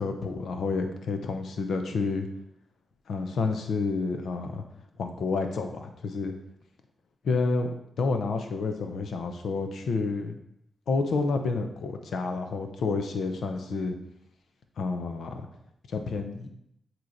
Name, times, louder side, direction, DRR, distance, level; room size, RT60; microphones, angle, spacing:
voice 1, 0.0-2.3 3.1-4.6 5.0-6.3 7.3-7.7 8.0-10.4 10.9-14.0 14.8-15.5 15.9-16.5, left 4 dB, 85° left, 5 dB, 0.7 m, -29 dB
7.7 x 3.0 x 4.1 m, 0.78 s
cardioid pair, 65°, 0 cm